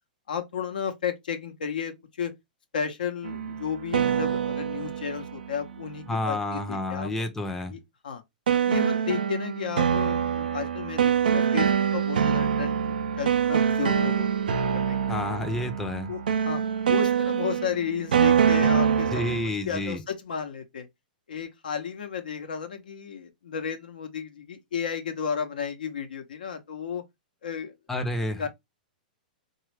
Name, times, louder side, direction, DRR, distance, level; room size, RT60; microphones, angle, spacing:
voice 1, 0.3-2.3 2.7-7.1 7.7-8.2 8.5-12.8 13.2-15.0 16.1-16.2 16.4-19.3 19.6-20.9 21.3-27.0 27.4-27.7 28.3-28.5, left 7 dB, 80° left, 0.7 m, -33 dB
sound 1, 3.2-6.2 8.5-19.5, right 8 dB, 80° right, 0.4 m, -25 dB
voice 2, 6.1-7.7 15.1-16.1 19.1-20.0 27.9-28.5, left 1 dB, 5° left, 0.5 m, -29 dB
2.9 x 2.3 x 3.3 m
hypercardioid pair, 115°, 5 cm